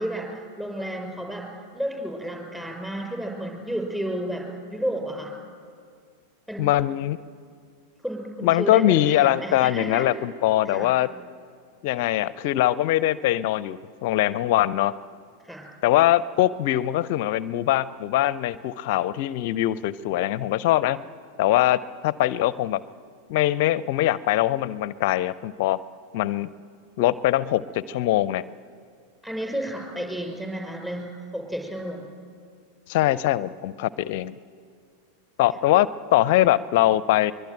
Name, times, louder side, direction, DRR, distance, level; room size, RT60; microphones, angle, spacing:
voice 1, 0.0-5.3 6.5-6.7 8.0-10.1 10.7-10.9 15.4-15.7 29.2-32.1 35.7-35.8, right 1 dB, 5° right, 2 dB, 5.4 m, -32 dB
voice 2, 6.6-7.2 8.4-11.1 11.8-14.9 15.8-21.0 21.4-22.8 23.3-25.8 26.1-26.5 27.0-28.4 32.9-34.3 35.4-37.3, left 14 dB, 50° left, 19 dB, 0.5 m, -22 dB
23.5 x 22.0 x 9.1 m, 2.2 s
figure-of-eight pair, 90°, 0 cm